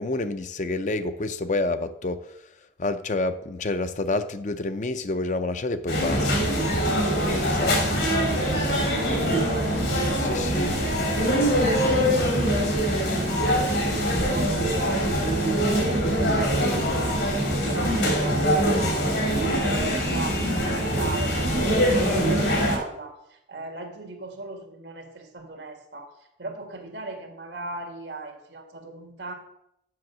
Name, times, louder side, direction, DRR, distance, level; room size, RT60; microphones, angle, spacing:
voice 1, 0.0-2.2 2.8-6.5 7.3-7.8 10.2-10.7, left 2 dB, 45° left, 10 dB, 0.5 m, -28 dB
sound 1, 5.9-22.8, equal, 80° left, 2.8 m, -23 dB
voice 2, 8.0-10.0 11.1-11.6 13.2-13.7 14.2-15.1 15.6-18.8 19.2-29.3, right 2 dB, 90° right, 4 dB, 1.7 m, -38 dB
7.7 x 6.3 x 6.0 m, 0.78 s
head